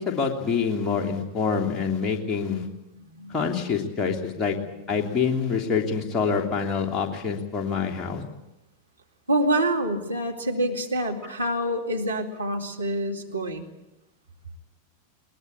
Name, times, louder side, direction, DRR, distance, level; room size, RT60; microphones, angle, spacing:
voice 1, 0.0-2.7 3.3-4.6 4.9-8.2, left 5 dB, 20° left, 0 dB, 3.3 m, -26 dB
voice 2, 4.5-5.0 9.3-13.7, right 1 dB, 80° right, 2 dB, 2.3 m, -27 dB
21.5 x 21.0 x 8.7 m, 0.94 s
figure-of-eight pair, 90°, 0 cm